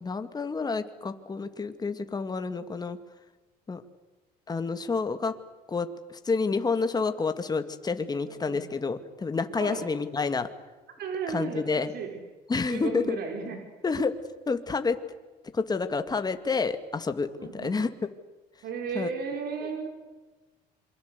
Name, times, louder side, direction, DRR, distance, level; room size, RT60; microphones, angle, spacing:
voice 1, 0.0-3.0 3.7-3.8 4.5-5.3 5.7-10.5 11.3-11.9 12.5-13.2 13.8-14.1 14.5-15.0 15.5-17.9 18.9-19.1, left 4 dB, 25° left, 8 dB, 2.2 m, -29 dB
voice 2, 8.2-8.7 9.6-9.8 11.0-12.2 12.7-13.6 17.4-17.8 18.6-19.9, right 6 dB, 70° right, 3 dB, 4.9 m, -34 dB
27.5 x 23.5 x 8.2 m, 1.2 s
cardioid pair, 110°, 17 cm